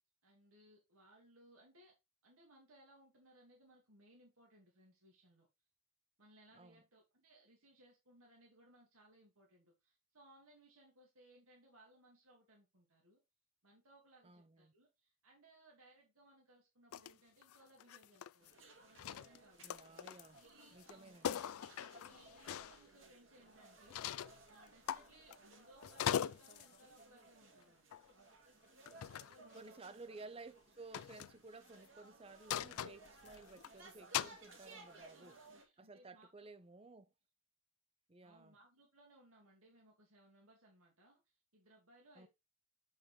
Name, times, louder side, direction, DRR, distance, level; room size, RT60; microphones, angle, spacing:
voice 1, 0.2-1.9 2.2-5.5 6.2-13.2 13.6-18.5 18.8-19.7 20.3-21.5 22.0-28.0 28.9-30.0 34.6-36.3 38.2-42.3, right 1 dB, 80° right, 2.1 m, -66 dB
voice 2, 14.2-14.7 19.6-20.4 20.7-21.4 29.5-35.3 35.8-37.1 38.1-38.5 42.2-42.3, right 3 dB, 25° right, 0.6 m, -55 dB
sound 1, 16.9-17.1 17.4-18.6 18.9-20.4 20.8-20.9 21.2-22.8 23.9-24.4 24.9-25.5 25.8-26.8 27.9-28.1 28.9-29.4 30.9-31.3 32.5-33.7 34.1-34.4, left 9 dB, 80° left, 0.3 m, -41 dB
sound 2, 18.4-35.6, right 3 dB, 60° right, 2.1 m, -61 dB
7.0 x 5.6 x 3.2 m
head